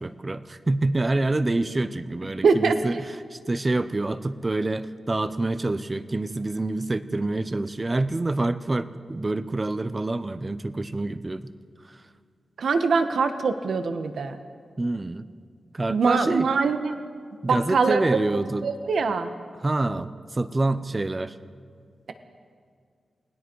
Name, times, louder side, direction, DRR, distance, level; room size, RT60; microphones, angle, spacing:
voice 1, 0.0-11.4 11.8-12.0 14.8-15.3 15.7-16.5 17.4-18.7 19.5-21.4, right 2 dB, 25° right, 13 dB, 0.8 m, -27 dB
voice 2, 2.4-2.8 12.6-14.4 15.9-16.9 17.5-18.0 18.6-19.3, right 4 dB, 70° right, 8 dB, 1.3 m, -23 dB
29.0 x 20.0 x 4.7 m, 2.2 s
wide cardioid pair, 145°, 0 cm